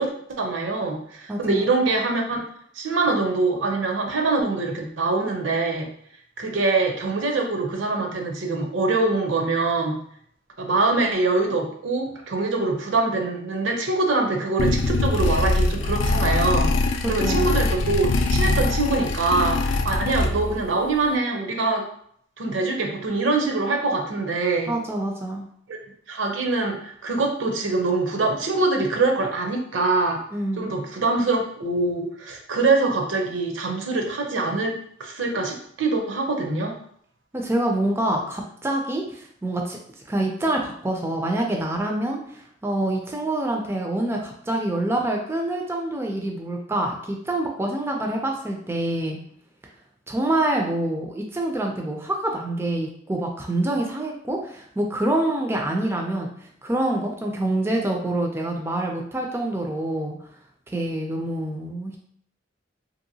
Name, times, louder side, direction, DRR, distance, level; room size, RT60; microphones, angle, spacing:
voice 1, 0.0-2.4 2.7-5.9 6.4-10.0 10.6-21.8 22.4-24.7 25.7-25.8 26.1-30.2 30.6-36.7, right 3 dB, 75° right, 2 dB, 0.6 m, -24 dB
voice 2, 1.3-1.7 17.0-17.5 24.7-25.4 30.3-30.7 37.3-39.8 40.1-42.2 42.6-49.2 50.1-56.3 56.6-60.2 60.7-62.0, right 1 dB, 15° right, 1 dB, 0.3 m, -26 dB
sound 1, 14.6-20.7, left 2 dB, 65° left, 0.3 m, -23 dB
2.9 x 2.7 x 2.7 m, 0.65 s
head